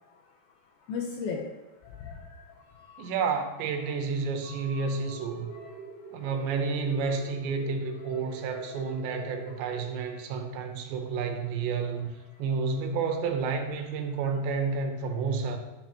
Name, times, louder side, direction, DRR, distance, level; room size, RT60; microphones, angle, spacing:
voice 1, 0.9-1.4 1.8-3.1 4.5-5.8 6.2-6.3 8.0-9.5 12.5-12.6, left 5 dB, 75° left, 1 dB, 2.3 m, -40 dB
voice 2, 3.0-5.5 6.1-12.1 12.4-15.6, right 5 dB, 85° right, 5 dB, 3.2 m, -30 dB
sound 1, 4.8-9.8, right 6 dB, 55° right, 2.8 m, -45 dB
12.0 x 7.6 x 3.0 m, 1.2 s
omnidirectional pair, 5.0 m